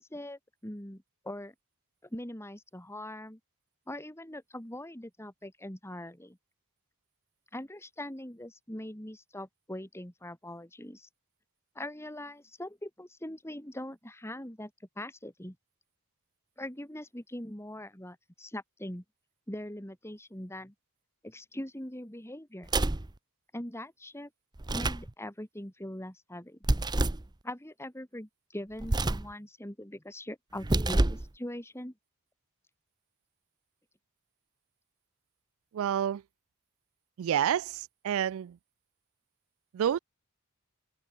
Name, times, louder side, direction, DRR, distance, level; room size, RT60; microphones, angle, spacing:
voice 1, 0.0-1.5 2.1-3.4 3.9-6.4 7.5-11.1 11.8-14.7 15.0-15.6 16.6-19.0 19.5-20.7 21.2-22.7 23.5-24.3 24.7-26.6 27.4-31.9, left 1 dB, 10° left, 3.9 m, -42 dB
sound 1, 22.6-23.1 24.6-25.1 26.6-27.3 28.8-29.3 30.6-31.3, right 2 dB, 20° right, 0.7 m, -27 dB
voice 2, 35.7-36.2 37.2-38.6 39.7-40.0, right 9 dB, 65° right, 0.3 m, -29 dB
open air
head